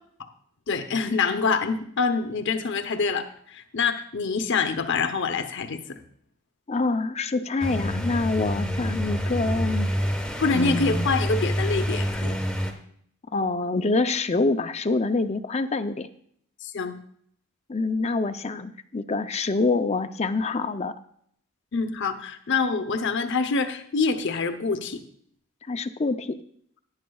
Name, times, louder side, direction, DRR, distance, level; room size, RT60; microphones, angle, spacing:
voice 1, 0.7-6.0 10.4-12.4 16.6-17.0 21.7-25.0, left 4 dB, 55° left, 9 dB, 0.8 m, -26 dB
voice 2, 6.7-9.9 10.5-11.1 13.3-16.1 17.7-20.9 25.7-26.4, left 3 dB, 30° left, 10 dB, 0.5 m, -26 dB
sound 1, 7.6-12.7, equal, 5° left, 1.1 m, -27 dB
17.0 x 10.5 x 2.3 m, 0.65 s
head